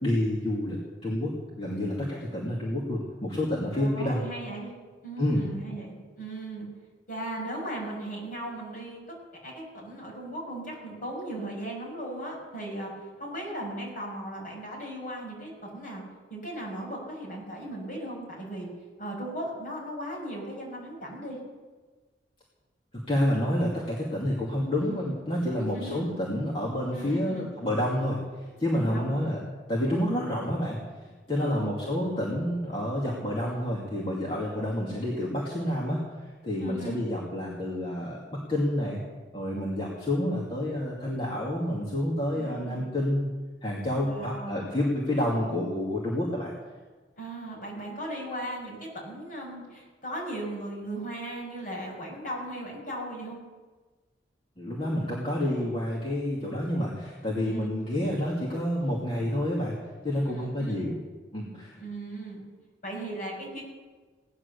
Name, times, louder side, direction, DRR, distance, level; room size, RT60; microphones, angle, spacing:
voice 1, 0.0-4.2 5.2-5.4 22.9-28.2 28.6-29.4 29.7-30.8 31.3-36.0 36.4-39.0 39.3-43.3 43.6-46.5 54.6-59.8 60.0-61.0 61.3-61.8, left 1 dB, 30° left, -5 dB, 2.4 m, -29 dB
voice 2, 3.7-4.7 5.0-6.7 7.1-9.2 9.4-12.9 13.2-16.0 16.3-18.7 19.0-21.4 25.6-26.1 26.9-27.5 28.8-29.3 31.4-31.7 36.6-37.0 42.3-42.9 44.0-44.7 47.2-53.4 57.3-57.7 60.1-60.8 61.8-62.4 62.8-63.6, right 1 dB, 45° left, -3 dB, 6.4 m, -37 dB
18.0 x 11.0 x 6.9 m, 1.3 s
head